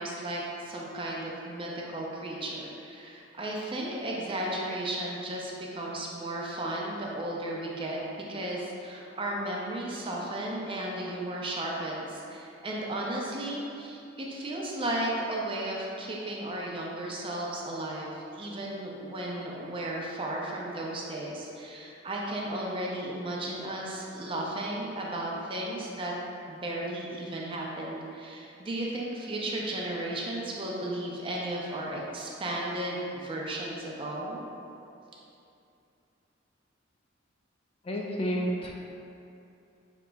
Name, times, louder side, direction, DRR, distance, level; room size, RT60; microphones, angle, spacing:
voice 1, 0.0-8.0 8.3-18.1 18.3-26.1 26.5-34.4, right 1 dB, 25° right, -3 dB, 0.5 m, -34 dB
voice 2, 37.8-38.7, equal, 30° left, -1 dB, 0.3 m, -30 dB
6.0 x 2.9 x 2.2 m, 2.7 s
head